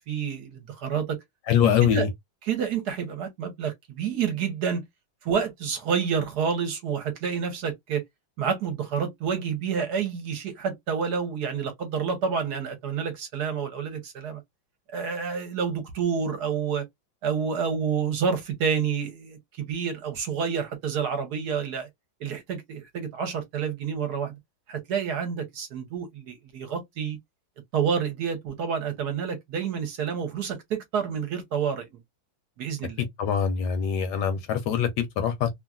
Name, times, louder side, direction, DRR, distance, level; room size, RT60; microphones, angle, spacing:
voice 1, 0.1-1.2 1.8-2.1 2.4-4.8 5.2-8.0 8.4-14.4 14.9-16.9 17.2-21.9 22.2-24.3 24.7-27.2 27.7-31.9 32.6-33.0, right 6 dB, 65° right, 1.2 m, -29 dB
voice 2, 1.5-2.1 33.0-35.5, left 8 dB, 70° left, 1.1 m, -24 dB
3.0 x 2.4 x 2.3 m
omnidirectional pair, 2.1 m